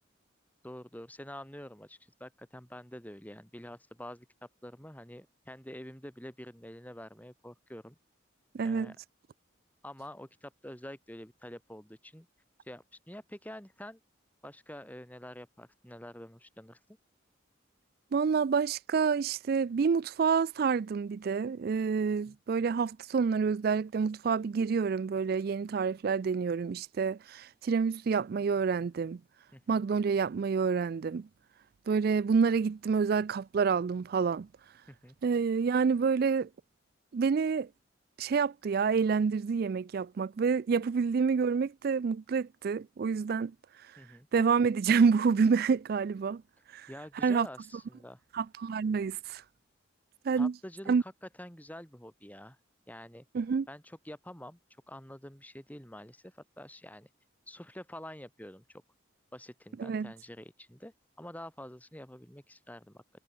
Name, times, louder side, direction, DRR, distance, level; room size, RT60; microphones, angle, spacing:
voice 1, 0.6-8.0 8.6-8.9 9.8-12.3 12.6-14.0 14.4-16.8 22.3-22.4 29.5-29.8 34.9-35.1 44.0-44.3 46.9-48.2 50.3-52.6 52.9-53.2 53.7-54.6 54.9-57.1 57.5-58.8 59.3-63.0, left 1 dB, 10° left, 5.1 m, -47 dB
voice 2, 8.5-8.9 18.1-29.2 29.7-31.3 31.9-34.5 35.2-36.5 37.1-37.7 38.2-43.5 44.3-46.4 46.7-46.9 47.2-47.5 48.3-49.4 50.2-50.5 50.9-51.0 53.3-53.7 59.8-60.1, right 5 dB, 50° right, 0.3 m, -28 dB
head